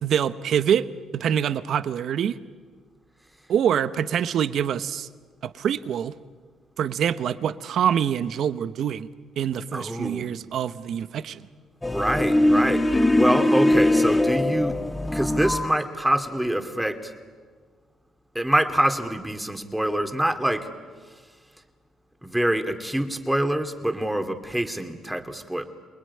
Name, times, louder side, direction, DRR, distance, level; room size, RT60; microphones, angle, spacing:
voice 1, 0.0-0.9 1.1-2.4 3.5-5.1 5.4-6.1 6.8-9.1 9.4-11.5, right 9 dB, 65° right, 14 dB, 1.0 m, -25 dB
voice 2, 9.7-10.3 11.8-14.8 15.1-17.1 18.3-20.7 22.2-25.6, right 1 dB, 5° right, 7 dB, 2.6 m, -25 dB
sound 1, 11.8-15.8, left 1 dB, 15° left, 1.2 m, -21 dB
28.5 x 20.0 x 9.8 m, 1.6 s
cardioid pair, 80°, 0 cm